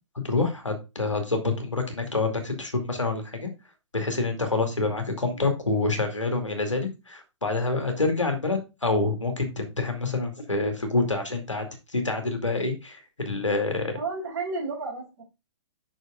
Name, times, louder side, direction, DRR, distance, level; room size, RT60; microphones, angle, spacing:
voice 1, 0.2-3.5 3.9-13.9, left 3 dB, 85° left, 5 dB, 2.3 m, -27 dB
voice 2, 14.0-15.2, right 3 dB, 40° right, -7 dB, 3.5 m, -32 dB
6.4 x 6.3 x 3.7 m, 0.27 s
figure-of-eight pair, 125°, 15 cm